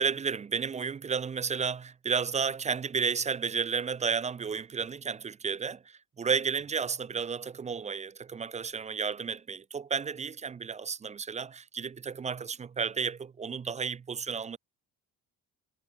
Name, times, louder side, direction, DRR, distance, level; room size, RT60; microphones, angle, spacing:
voice 1, 0.0-14.6, right 6 dB, 20° right, 0.3 m, -32 dB
cardioid pair, 95°, 36 cm